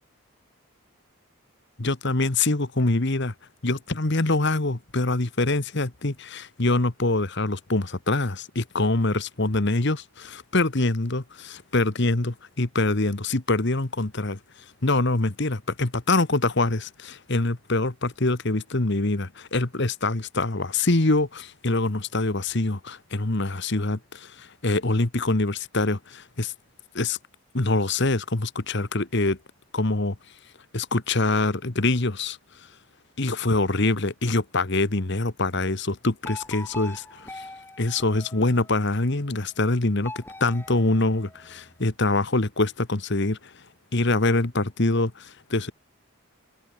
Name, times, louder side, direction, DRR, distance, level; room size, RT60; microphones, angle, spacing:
voice 1, 1.8-3.3 3.6-14.4 14.8-26.5 26.9-27.2 27.5-29.4 29.7-30.1 30.7-32.4 33.2-37.5 37.8-43.5 43.9-45.7, left 2 dB, 50° left, 1.4 m, -24 dB
sound 1, 36.2-38.9 40.0-41.8, left 2 dB, 10° left, 6.1 m, -42 dB
head